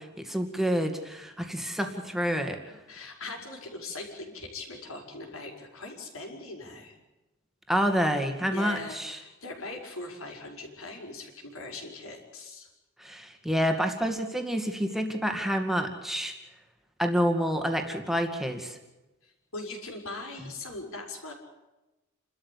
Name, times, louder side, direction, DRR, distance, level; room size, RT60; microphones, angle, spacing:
voice 1, 0.0-2.6 7.7-9.2 13.0-16.3 17.0-18.8, equal, ahead, 5 dB, 2.2 m, -28 dB
voice 2, 2.7-7.0 8.5-12.7 19.2-21.3, left 2 dB, 75° left, 2 dB, 5.2 m, -41 dB
29.5 x 13.0 x 8.5 m, 1.0 s
head